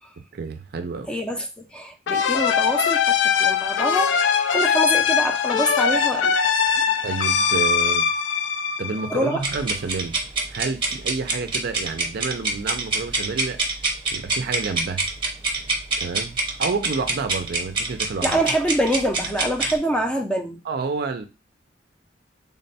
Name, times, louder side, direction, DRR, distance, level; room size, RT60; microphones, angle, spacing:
voice 1, 0.3-1.1 7.0-8.1 8.8-10.2 10.5-13.6 14.1-15.0 16.0-18.3 20.7-21.3, right 4 dB, 60° right, 0.5 m, -29 dB
voice 2, 1.1-6.5 6.8-7.0 7.8-7.9 9.1-9.4 18.2-20.6, right 1 dB, 5° left, 0.5 m, -25 dB
sound 1, 2.1-9.5, left 7 dB, 75° left, 0.4 m, -21 dB
sound 2, 9.4-19.8, right 3 dB, 25° right, 0.8 m, -26 dB
3.5 x 2.2 x 4.0 m
head